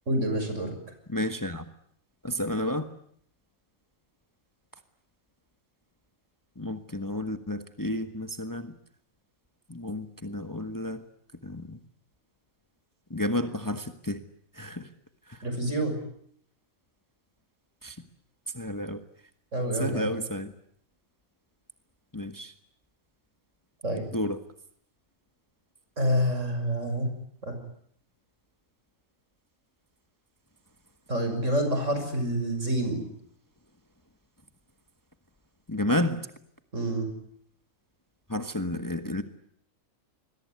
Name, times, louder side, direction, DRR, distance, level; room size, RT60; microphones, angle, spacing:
voice 1, 0.1-0.7 15.4-16.0 19.5-20.1 23.8-24.1 26.0-27.1 27.4-27.6 31.1-33.0 36.7-37.1, right 1 dB, 65° right, 6 dB, 6.9 m, -27 dB
voice 2, 1.1-1.6 2.2-2.9 6.6-8.7 9.7-11.0 11.4-11.8 13.1-14.2 14.5-14.9 15.3-15.4 17.8-18.0 18.5-19.0 19.7-20.5 22.1-22.5 24.1-24.4 35.7-36.3 38.3-39.2, left 1 dB, 15° left, 8 dB, 1.4 m, -31 dB
27.5 x 21.5 x 9.6 m, 0.67 s
omnidirectional pair, 1.4 m